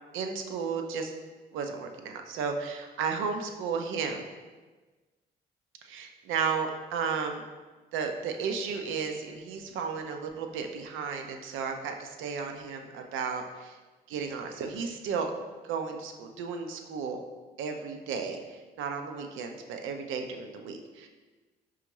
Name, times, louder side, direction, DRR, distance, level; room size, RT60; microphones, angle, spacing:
voice 1, 0.1-1.1 1.5-4.2 5.8-7.5 7.9-13.8 14.1-15.3 15.6-17.2 17.6-21.1, right 5 dB, 70° right, 5 dB, 0.5 m, -34 dB
5.1 x 2.4 x 2.9 m, 1.3 s
hypercardioid pair, 55°, 21 cm